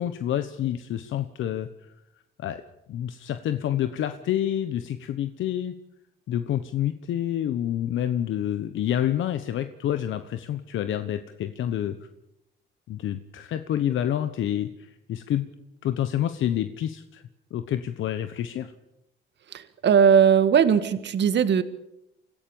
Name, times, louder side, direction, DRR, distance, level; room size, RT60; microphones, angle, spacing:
voice 1, 0.0-1.9 2.4-2.6 2.9-5.7 6.3-12.0 12.9-15.5 15.8-17.2 17.5-18.7, left 11 dB, 75° left, 10 dB, 1.2 m, -28 dB
voice 2, 19.8-21.6, right 7 dB, 60° right, 12 dB, 1.8 m, -18 dB
26.5 x 16.5 x 7.2 m, 0.84 s
cardioid pair, 90°, 20 cm